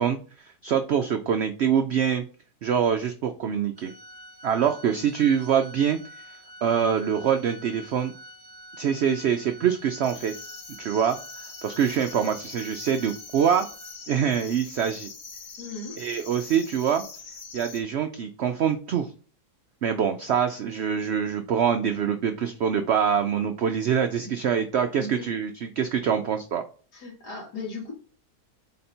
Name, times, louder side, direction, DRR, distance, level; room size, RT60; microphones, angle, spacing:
voice 1, 0.0-2.2 2.6-3.9 4.4-6.0 6.6-8.1 8.8-10.3 10.8-13.7 14.1-15.1 16.0-17.0 17.5-19.1 19.8-26.6, right 8 dB, 80° right, 7 dB, 0.6 m, -25 dB
Organ, 3.8-14.4, equal, 30° right, 1.1 m, -47 dB
sound 1, 10.0-17.8, left 5 dB, 60° left, 1.4 m, -43 dB
voice 2, 15.6-16.0 24.2-24.3 25.0-25.3 26.9-27.9, left 3 dB, 85° left, -1 dB, 2.3 m, -37 dB
4.3 x 4.2 x 5.2 m, 0.41 s
omnidirectional pair, 1.7 m